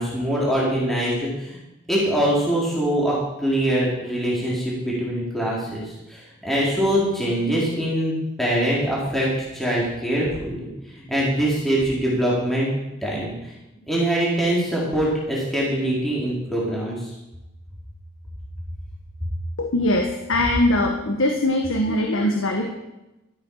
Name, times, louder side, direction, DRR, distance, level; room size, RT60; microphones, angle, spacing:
voice 1, 0.0-1.6 1.9-9.3 9.5-10.7 11.1-12.7 13.0-13.5 13.9-17.1, right 1 dB, ahead, -6 dB, 4.1 m, -23 dB
voice 2, 19.6-22.7, left 1 dB, 85° left, 3 dB, 1.6 m, -21 dB
14.0 x 12.0 x 5.6 m, 0.95 s
head